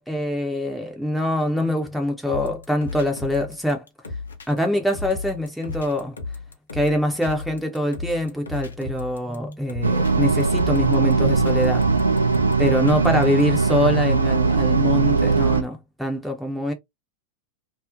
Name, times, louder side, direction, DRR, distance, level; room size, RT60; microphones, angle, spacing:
voice 1, 0.1-3.8 4.5-6.1 6.7-11.9 12.6-16.7, left 1 dB, ahead, 0.5 m, -24 dB
sound 1, 2.3-13.4, left 3 dB, 75° left, 0.6 m, -34 dB
sound 2, 9.8-15.6, right 4 dB, 80° right, 0.4 m, -20 dB
2.4 x 2.0 x 2.6 m
figure-of-eight pair, 90°, 0 cm